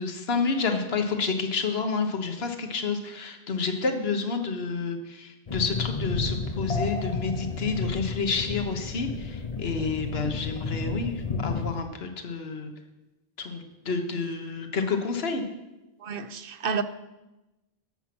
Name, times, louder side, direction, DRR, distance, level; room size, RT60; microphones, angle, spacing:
voice 1, 0.0-12.7 13.4-15.4, left 4 dB, 75° left, 1.5 m, -29 dB
sound 1, 5.5-11.8, left 3 dB, 40° left, 0.8 m, -31 dB
voice 2, 16.0-16.8, right 6 dB, 65° right, 0.9 m, -30 dB
14.5 x 7.2 x 6.1 m
omnidirectional pair, 1.0 m